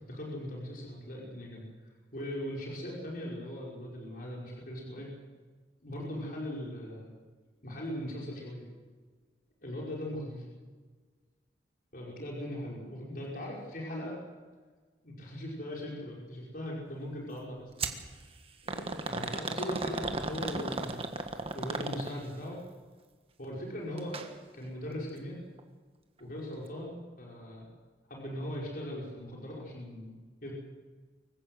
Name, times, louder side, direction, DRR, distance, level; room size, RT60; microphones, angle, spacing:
voice 1, 0.1-1.7 2.1-5.1 5.8-7.1 7.6-8.7 9.6-10.4 11.9-14.2 15.0-17.9 18.6-21.1 21.5-22.6 23.4-24.2 24.5-25.4 26.2-27.7 28.1-30.1 30.4-30.5, equal, 50° left, -3 dB, 5.4 m, -39 dB
sound 1, 17.8-18.0 18.7-22.4 24.0-24.3 24.6-24.7 25.6-25.7, right 3 dB, 30° right, 1.6 m, -35 dB
24.5 x 15.5 x 8.0 m, 1.5 s
head